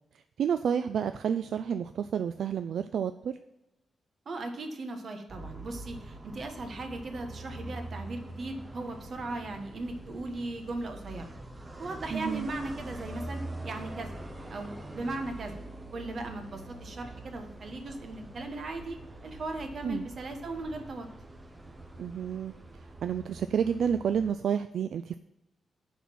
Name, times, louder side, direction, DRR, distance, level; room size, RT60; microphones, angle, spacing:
voice 1, 0.4-3.3 12.1-12.5 19.8-20.0 22.0-22.5 23.0-25.2, right 7 dB, 70° right, 10 dB, 0.3 m, -30 dB
voice 2, 4.2-11.2 11.8-14.2 14.5-15.6 15.9-19.0 19.2-21.1, right 2 dB, 45° right, 5 dB, 1.4 m, -38 dB
sound 1, 5.3-24.3, right 2 dB, 15° right, 0.8 m, -44 dB
10.5 x 4.2 x 7.5 m, 0.96 s
wide cardioid pair, 155°, 0 cm